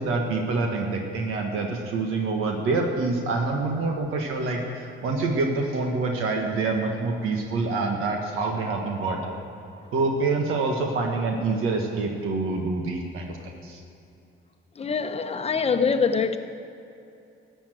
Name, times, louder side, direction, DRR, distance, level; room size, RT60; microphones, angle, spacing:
voice 1, 0.0-9.3 9.9-13.8, right 3 dB, 85° right, 1.4 m, -26 dB
voice 2, 14.8-16.4, left 5 dB, 30° left, 0.8 m, -24 dB
14.0 x 7.2 x 9.1 m
cardioid pair, 105°, 21 cm